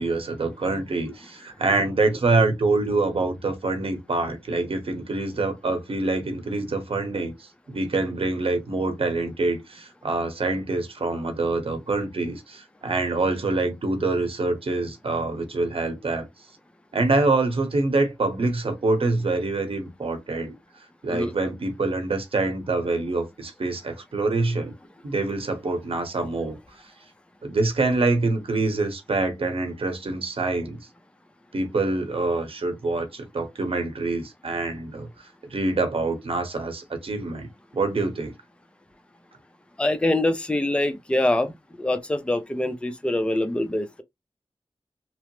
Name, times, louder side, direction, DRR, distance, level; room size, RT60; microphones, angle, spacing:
voice 1, 0.0-16.3 16.9-20.5 21.0-24.7 25.0-26.6 27.4-30.8 31.5-38.3, right 3 dB, 65° right, 0.9 m, -25 dB
voice 2, 39.8-41.5 41.8-44.0, left 1 dB, 10° left, 0.5 m, -24 dB
3.0 x 2.0 x 3.0 m
wide cardioid pair, 70°, 10 cm